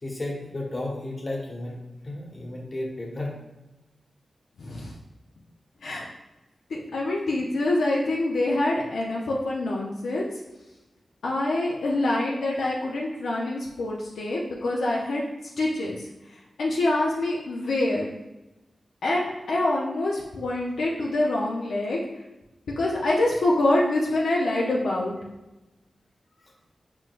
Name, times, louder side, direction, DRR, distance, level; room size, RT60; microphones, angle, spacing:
voice 1, 0.0-1.8 2.0-3.3 26.4-26.5, left 1 dB, 45° left, 0 dB, 1.2 m, -33 dB
voice 2, 4.6-5.0 5.8-6.1 6.7-10.3 11.2-15.2 15.6-18.1 19.0-22.2 22.8-25.1, left 2 dB, 85° left, -4 dB, 0.5 m, -26 dB
4.6 x 3.8 x 2.4 m, 1.0 s
cardioid pair, 45°, 0 cm